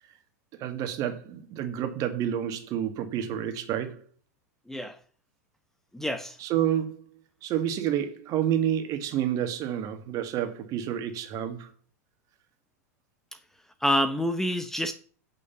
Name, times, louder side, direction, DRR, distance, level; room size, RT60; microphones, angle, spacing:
voice 1, 0.6-4.0 6.4-7.1 7.4-11.7, right 10 dB, 40° right, 2.0 m, -29 dB
voice 2, 5.9-6.4 13.8-14.9, equal, 5° left, 0.9 m, -27 dB
8.7 x 6.4 x 7.2 m
hypercardioid pair, 100°, 9 cm